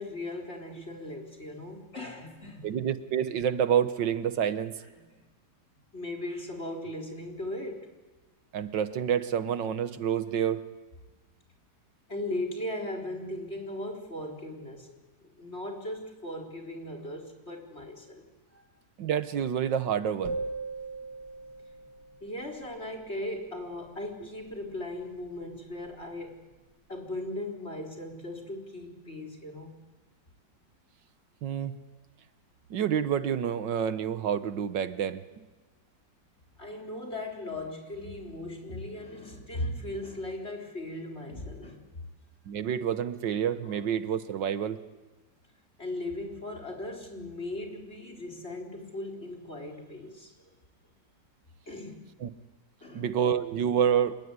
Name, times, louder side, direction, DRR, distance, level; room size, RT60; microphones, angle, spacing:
voice 1, 0.0-2.7 4.7-5.2 5.9-7.9 12.1-18.6 22.2-26.5 26.9-29.8 36.6-41.8 43.7-43.8 45.8-50.3 51.7-52.0 52.8-53.1, left 1 dB, 35° left, 1 dB, 4.2 m, -38 dB
voice 2, 2.6-4.7 8.5-10.6 19.0-20.4 31.4-31.7 32.7-35.5 42.5-44.8 52.2-52.3 52.9-54.2, right 8 dB, 90° right, 12 dB, 1.9 m, -28 dB
sound 1, 20.2-22.5, right 3 dB, 70° right, 2.8 m, -38 dB
27.5 x 20.0 x 9.7 m, 1.2 s
omnidirectional pair, 1.9 m